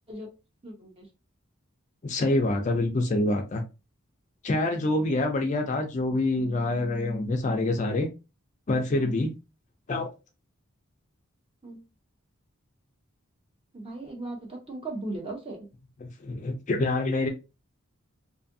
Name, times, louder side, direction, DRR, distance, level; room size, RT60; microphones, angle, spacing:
voice 1, 0.6-1.1 11.6-11.8 13.7-15.7, right 2 dB, 25° right, 1 dB, 0.7 m, -37 dB
voice 2, 2.0-3.6 4.4-8.1 8.7-9.3 9.9-10.1 16.0-17.3, left 2 dB, 35° left, 4 dB, 0.4 m, -26 dB
2.6 x 2.4 x 2.6 m, 0.29 s
head